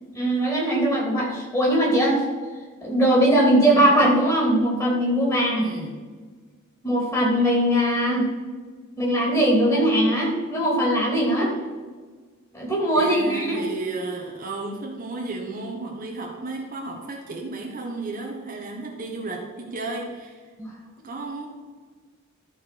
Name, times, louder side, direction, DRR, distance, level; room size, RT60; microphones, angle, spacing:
voice 1, 0.1-2.2 2.8-5.7 6.8-8.3 9.0-11.5 12.5-13.6 20.6-20.7, right 1 dB, 15° left, -3 dB, 3.0 m, -20 dB
voice 2, 5.6-6.0 12.9-20.5 21.0-21.5, right 2 dB, 40° right, 0 dB, 1.3 m, -33 dB
13.0 x 5.0 x 6.1 m, 1.4 s
head